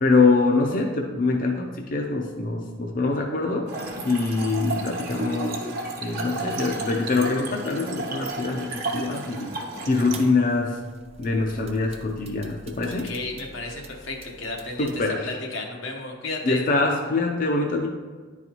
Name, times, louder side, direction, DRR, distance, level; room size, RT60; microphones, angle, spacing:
voice 1, 0.0-3.7 4.0-5.7 6.0-9.5 9.9-10.8 11.2-13.1 14.8-15.4 16.4-17.9, left 3 dB, 45° left, 1 dB, 0.5 m, -24 dB
Trickle dribble / Fill (with liquid), 3.7-10.3, right 2 dB, 50° right, 1.0 m, -32 dB
sound 1, 10.1-15.0, right 3 dB, 35° right, 0.6 m, -46 dB
voice 2, 12.8-14.9 15.2-16.6, left 3 dB, 85° left, 1 dB, 1.0 m, -33 dB
9.9 x 4.0 x 2.9 m, 1.5 s
head